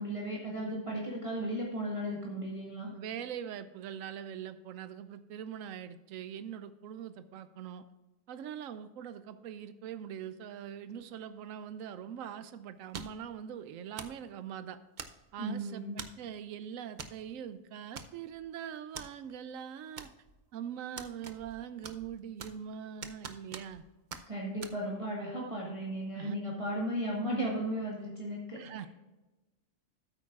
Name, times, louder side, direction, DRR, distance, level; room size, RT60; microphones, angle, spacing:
voice 1, 0.0-2.9 15.4-16.0 24.3-28.7, equal, 25° right, -4 dB, 1.7 m, -35 dB
voice 2, 2.9-7.8 8.3-14.8 15.3-20.1 20.5-23.8 26.1-26.4 28.6-28.9, right 9 dB, 90° right, 12 dB, 1.0 m, -42 dB
sound 1, 12.9-13.3 14.0-14.2 15.0-15.4 16.0-16.3 17.0-17.2 17.5-17.6 18.0-18.4 19.0-19.1 20.0-20.4 21.0-21.6 21.8-22.7 23.0-23.8 24.1-24.2 24.6-24.8, right 5 dB, 45° right, 0.6 m, -44 dB
14.0 x 8.5 x 2.4 m, 1.1 s
omnidirectional pair, 1.3 m